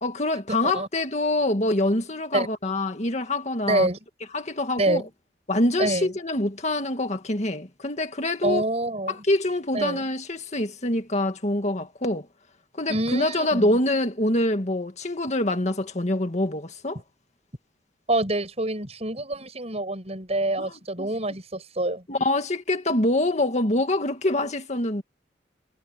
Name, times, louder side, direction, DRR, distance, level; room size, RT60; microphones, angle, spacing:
voice 1, 0.0-3.9 4.3-5.0 5.5-8.6 9.1-12.3 12.8-17.0 20.6-20.7 21.0-21.1 22.1-25.0, left 1 dB, 40° left, 2.0 m, -25 dB
voice 2, 3.7-4.0 4.8-5.1 5.8-6.1 8.4-9.1 9.7-10.1 12.9-13.8 18.1-22.0, right 2 dB, 40° right, 8.0 m, -26 dB
head